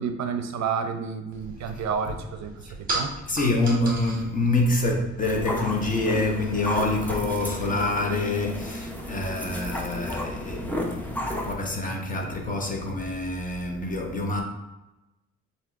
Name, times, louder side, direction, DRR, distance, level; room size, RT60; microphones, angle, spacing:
voice 1, 0.0-2.5 2.8-3.1, right 6 dB, 65° right, 0.5 m, -30 dB
sound 1, 1.3-6.8, right 2 dB, 30° right, 1.1 m, -37 dB
voice 2, 3.3-14.4, left 2 dB, 25° left, 1.0 m, -26 dB
sound 2, 5.2-11.5, left 1 dB, 5° left, 0.7 m, -33 dB
7.4 x 2.7 x 2.4 m
cardioid pair, 90°, 30 cm